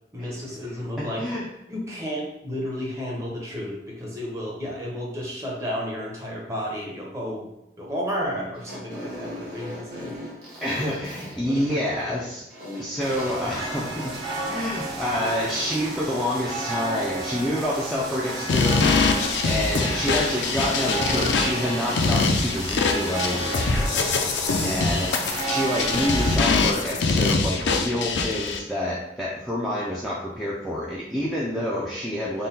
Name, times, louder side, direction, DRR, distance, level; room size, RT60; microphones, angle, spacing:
voice 1, 0.1-1.2 1.7-7.5 7.8-10.1 11.5-12.1, equal, 15° right, -3 dB, 0.7 m, -32 dB
voice 2, 1.0-1.4 10.6-12.4 12.8-14.1 14.4-25.2 25.4-32.5, left 1 dB, ahead, -6 dB, 0.3 m, -28 dB
Fart, 8.5-14.3, equal, 60° right, 1.3 m, -39 dB
sound 1, 13.0-26.4, right 2 dB, 75° right, 1.3 m, -32 dB
sound 2, 18.5-28.6, left 4 dB, 85° left, 0.4 m, -24 dB
3.8 x 2.1 x 3.9 m, 0.91 s
head